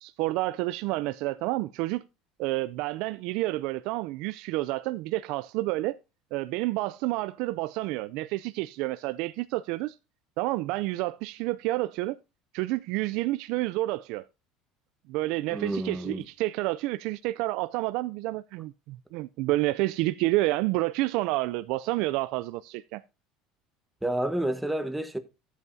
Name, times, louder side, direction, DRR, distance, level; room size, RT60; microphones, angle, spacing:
voice 1, 0.0-2.0 2.4-6.0 6.3-10.0 10.4-12.2 12.5-14.2 15.1-23.0, right 18 dB, 65° right, 0.4 m, -29 dB
voice 2, 15.5-16.2 24.0-25.2, right 1 dB, 5° right, 1.0 m, -29 dB
13.5 x 8.1 x 2.6 m
cardioid pair, 135°, 0 cm